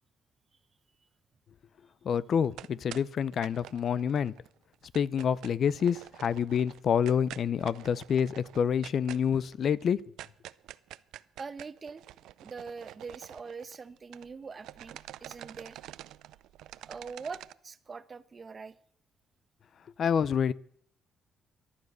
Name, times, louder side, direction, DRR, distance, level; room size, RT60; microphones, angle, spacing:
voice 1, 2.0-4.3 4.9-10.0 20.0-20.5, left 7 dB, 60° left, 0.5 m, -27 dB
sound 1, 2.3-4.5 4.7-14.3 14.6-17.5, right 13 dB, 90° right, 0.5 m, -47 dB
voice 2, 11.4-12.1 12.4-15.8 16.9-18.8, right 5 dB, 35° right, 1.0 m, -43 dB
14.5 x 11.5 x 6.7 m
cardioid pair, 90°, 0 cm